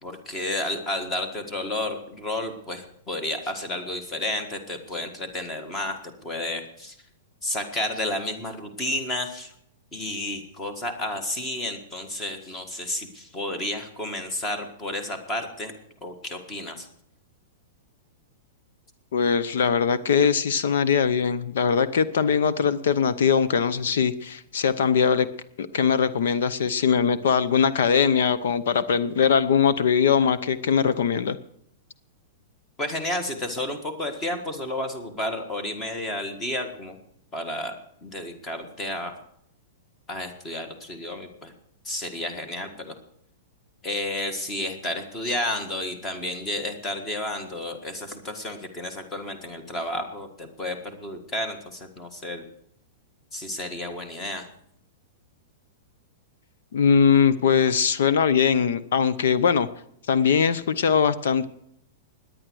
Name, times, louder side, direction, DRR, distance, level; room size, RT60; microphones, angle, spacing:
voice 1, 0.0-7.0 7.4-9.5 9.9-15.7 16.0-16.9 32.8-36.9 37.3-37.7 38.0-39.1 40.1-41.5 41.8-42.9 43.8-52.4 53.3-54.4, left 1 dB, 15° left, 7 dB, 1.6 m, -31 dB
voice 2, 19.1-25.3 25.6-31.4 56.7-59.7 60.1-61.4, left 6 dB, 65° left, 14 dB, 0.8 m, -21 dB
18.0 x 10.5 x 6.3 m, 0.72 s
supercardioid pair, 175°, 0 cm